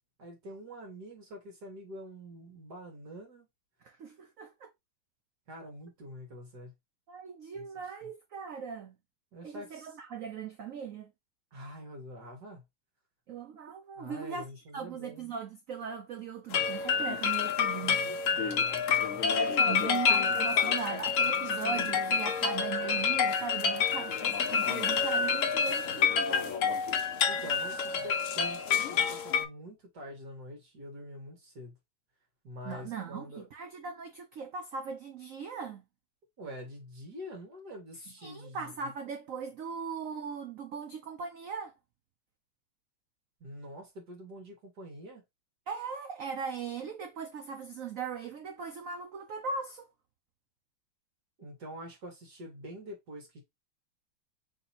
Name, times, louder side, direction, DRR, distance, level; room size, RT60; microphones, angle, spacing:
voice 1, 0.2-3.5 5.5-6.7 7.5-7.6 9.3-9.9 11.5-12.6 14.0-15.3 17.7-19.2 27.3-31.7 32.4-33.5 36.4-38.7 43.4-45.2 51.4-53.4, equal, 55° right, 2.0 m, -46 dB
voice 2, 3.8-4.7 7.1-9.0 9.4-11.1 13.3-18.1 19.6-26.6 32.6-35.8 38.2-41.7 45.7-49.9, right 6 dB, 85° right, 0.7 m, -39 dB
sound 1, 16.5-29.4, left 6 dB, 90° left, 0.6 m, -28 dB
4.0 x 2.9 x 4.1 m
omnidirectional pair, 2.2 m